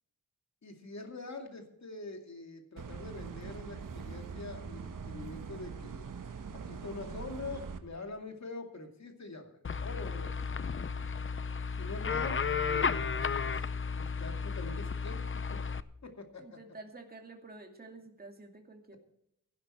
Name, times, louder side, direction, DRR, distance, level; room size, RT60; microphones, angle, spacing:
voice 1, 0.6-6.0 6.5-9.6 9.8-10.4 11.7-13.5 13.9-15.6 16.0-16.6, left 3 dB, 55° left, 4 dB, 2.5 m, -44 dB
sound 1, 2.8-7.8, right 6 dB, 70° right, 1.3 m, -43 dB
sound 2, 9.6-15.8, left 5 dB, 40° left, 0.6 m, -33 dB
voice 2, 16.4-19.0, right 3 dB, 30° right, 3 dB, 2.4 m, -50 dB
17.0 x 11.0 x 4.4 m, 0.78 s
wide cardioid pair, 110°, 33 cm